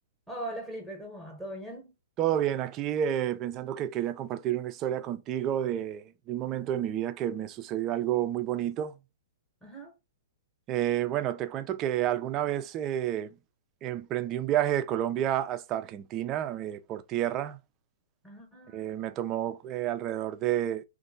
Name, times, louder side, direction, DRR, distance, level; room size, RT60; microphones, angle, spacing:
voice 1, 0.3-1.9 9.6-9.9 18.2-18.9, right 1 dB, 5° right, 0.9 m, -40 dB
voice 2, 2.2-8.9 10.7-13.3 13.8-17.6 18.7-20.8, right 11 dB, 30° right, 0.4 m, -30 dB
2.6 x 2.5 x 3.9 m
hypercardioid pair, 140°, 0 cm